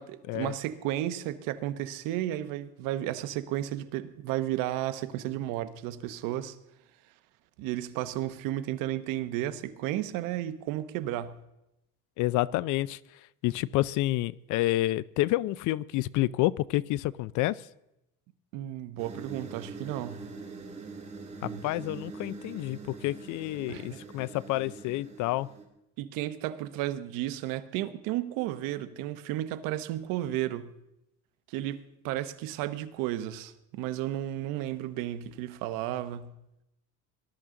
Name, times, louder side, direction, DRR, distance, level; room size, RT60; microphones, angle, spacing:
voice 1, 0.0-6.6 7.6-11.3 18.5-20.3 21.4-21.6 23.7-24.0 26.0-30.7 31.5-36.3, right 13 dB, 85° right, 1.0 m, -33 dB
voice 2, 12.2-13.0 13.4-17.6 21.4-25.5, left 17 dB, 65° left, 0.5 m, -29 dB
sound 1, 19.0-25.6, right 4 dB, 20° right, 2.3 m, -43 dB
19.0 x 12.0 x 3.8 m
cardioid pair, 145°, 32 cm